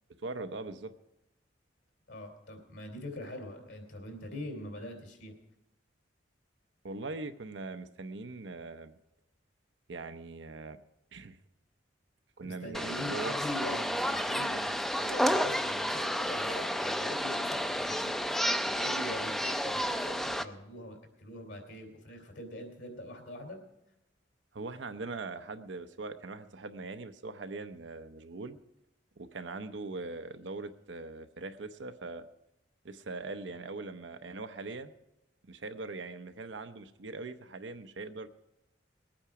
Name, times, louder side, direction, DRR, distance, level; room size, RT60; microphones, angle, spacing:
voice 1, 0.2-0.9 6.8-9.0 9.9-10.8 11.1-11.4 12.4-13.3 24.5-28.6 29.2-32.3 32.8-34.9 35.5-38.3, right 3 dB, 80° right, 9 dB, 0.7 m, -41 dB
voice 2, 2.1-5.3 12.4-18.5 18.7-23.6, left 1 dB, 75° left, 3 dB, 3.1 m, -43 dB
sound 1, 12.7-20.4, equal, ahead, 0.4 m, -31 dB
20.0 x 8.8 x 4.9 m, 0.90 s
head